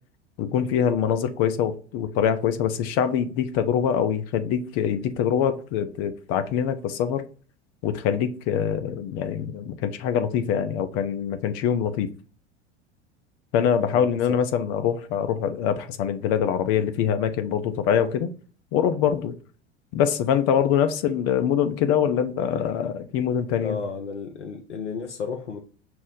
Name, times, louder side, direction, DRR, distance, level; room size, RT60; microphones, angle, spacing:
voice 1, 0.4-7.2 7.8-12.1 13.5-18.3 18.7-19.3 19.9-23.8, left 8 dB, 45° left, 0.6 m, -24 dB
voice 2, 23.6-25.6, left 5 dB, 80° left, 0.6 m, -33 dB
5.9 x 2.1 x 3.8 m
figure-of-eight pair, 80°, 34 cm